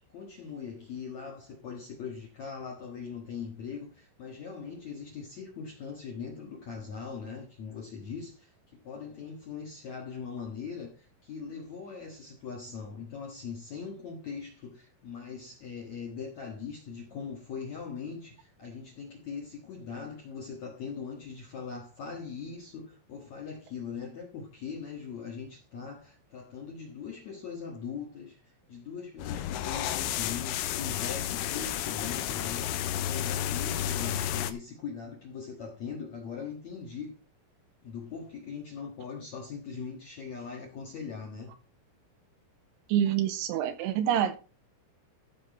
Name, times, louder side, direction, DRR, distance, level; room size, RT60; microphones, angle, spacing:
voice 1, 0.0-37.1 37.8-41.5, left 6 dB, 65° left, 1.8 m, -41 dB
sound 1, 29.2-34.5, left 11 dB, 80° left, 2.4 m, -32 dB
voice 2, 42.9-44.4, right 10 dB, 85° right, 3.0 m, -26 dB
14.5 x 6.1 x 4.2 m
omnidirectional pair, 5.5 m